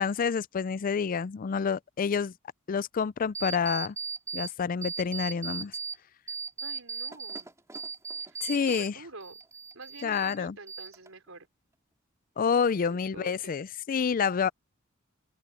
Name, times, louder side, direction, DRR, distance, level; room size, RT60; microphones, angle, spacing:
voice 1, 0.0-2.3 2.7-4.0 4.3-5.7 8.4-8.9 10.0-10.6 12.4-14.5, left 6 dB, 45° left, 0.4 m, -28 dB
sound 1, 3.3-4.5 4.8-6.0 6.3-8.9 9.2-10.4 10.7-11.3, right 5 dB, 15° right, 2.7 m, -37 dB
voice 2, 6.6-7.5 8.2-9.4 9.7-11.5 12.7-13.6, right 3 dB, 90° right, 4.0 m, -48 dB
head